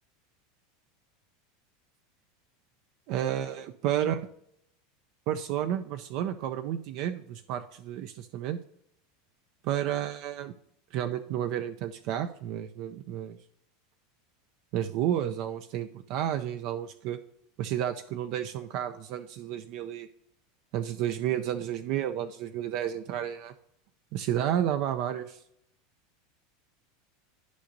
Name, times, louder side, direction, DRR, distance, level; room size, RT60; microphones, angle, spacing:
voice 1, 3.1-4.2 5.3-8.6 9.6-10.5 10.9-13.4 14.7-17.2 17.6-20.1 20.7-23.5 24.1-25.4, right 11 dB, 55° right, 8 dB, 0.4 m, -31 dB
11.5 x 5.1 x 2.6 m, 0.73 s
supercardioid pair, 130°, 0 cm